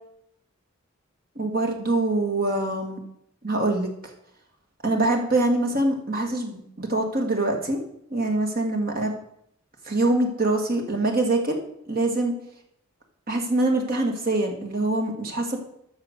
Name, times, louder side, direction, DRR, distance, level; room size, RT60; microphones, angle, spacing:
voice 1, 1.4-3.0 3.4-4.1 4.8-7.8 8.1-9.2 9.9-11.6 11.9-12.3 13.3-15.6, right 2 dB, 40° right, 2 dB, 1.9 m, -24 dB
13.5 x 5.6 x 6.6 m, 0.74 s
head